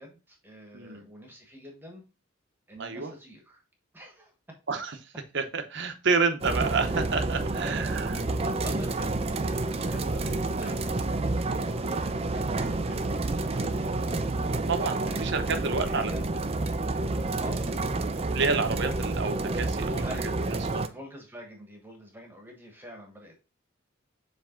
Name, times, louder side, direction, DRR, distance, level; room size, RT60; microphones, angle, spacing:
voice 1, 0.0-2.0 2.7-3.6 3.9-4.3 7.5-14.0 15.0-16.3 17.4-17.9 20.0-23.4, equal, 10° right, 1.3 m, -45 dB
voice 2, 2.8-3.1 4.7-8.2 14.7-16.1 18.3-20.1 20.5-20.8, right 4 dB, 60° right, 0.9 m, -29 dB
sound 1, 6.4-20.9, right 2 dB, 30° right, 0.5 m, -29 dB
7.4 x 3.3 x 3.8 m
head